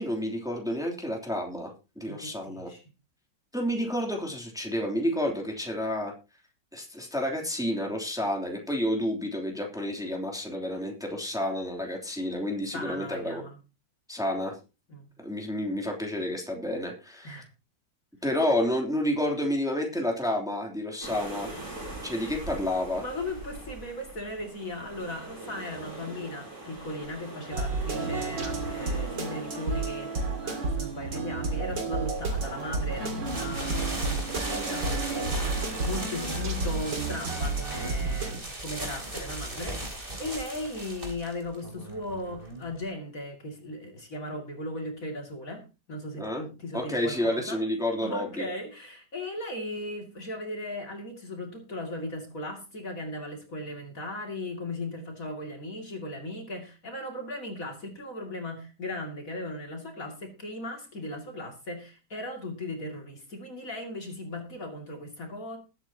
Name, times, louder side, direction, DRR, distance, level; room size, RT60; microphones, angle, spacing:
voice 1, 0.0-2.7 3.5-6.1 6.7-13.4 14.1-14.5 15.2-17.4 18.2-21.5 22.0-23.0 46.2-46.4 46.7-48.4, left 1 dB, ahead, 1 dB, 3.0 m, -30 dB
voice 2, 2.1-2.8 12.7-13.6 14.9-15.1 17.2-17.5 22.1-22.4 23.0-47.6 48.0-65.6, left 1 dB, 50° left, 2 dB, 2.9 m, -37 dB
sound 1, 21.0-38.1, right 2 dB, 60° right, 6.3 m, -43 dB
sound 2, 27.5-38.4, right 3 dB, 80° right, 3.0 m, -31 dB
sound 3, 33.3-42.8, right 1 dB, 30° right, 3.5 m, -37 dB
20.5 x 9.0 x 2.9 m, 0.29 s
omnidirectional pair, 1.9 m